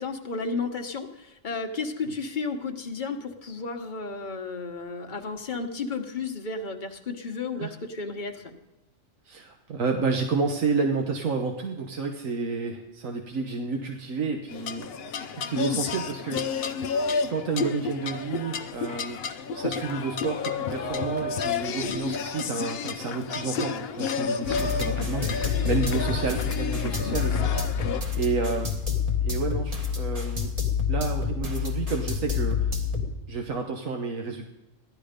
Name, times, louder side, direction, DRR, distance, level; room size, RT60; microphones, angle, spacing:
voice 1, 0.0-8.5 21.7-22.0 25.6-25.7, left 4 dB, 40° left, 4 dB, 1.2 m, -33 dB
voice 2, 9.2-14.9 15.2-16.4 17.3-19.2 19.5-28.7 29.2-30.5 30.9-32.7 33.3-34.5, right 4 dB, 90° right, 3 dB, 1.4 m, -30 dB
sound 1, 14.5-28.0, left 5 dB, 55° left, 0.8 m, -31 dB
sound 2, 24.4-33.1, left 6 dB, 30° right, 1.8 m, -28 dB
15.5 x 12.0 x 5.1 m, 0.96 s
omnidirectional pair, 1.3 m